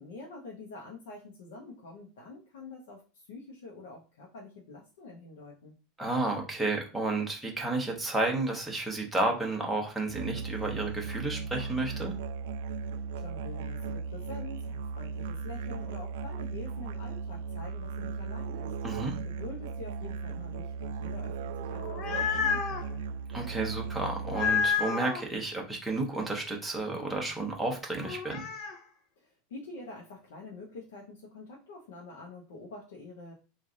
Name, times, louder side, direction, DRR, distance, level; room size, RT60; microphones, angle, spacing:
voice 1, 0.0-5.8 12.9-18.7 19.2-23.0 29.2-33.3, left 3 dB, 90° left, -1 dB, 0.8 m, -46 dB
voice 2, 6.0-12.1 18.8-19.2 23.3-28.5, right 2 dB, 5° right, -1 dB, 0.8 m, -31 dB
Musical instrument, 10.1-24.8, right 5 dB, 80° right, 0.3 m, -37 dB
sound 1, 21.7-22.9 24.3-25.2 28.0-28.8, left 6 dB, 40° left, 0.6 m, -30 dB
3.1 x 2.4 x 3.8 m, 0.35 s
supercardioid pair, 160°, 0 cm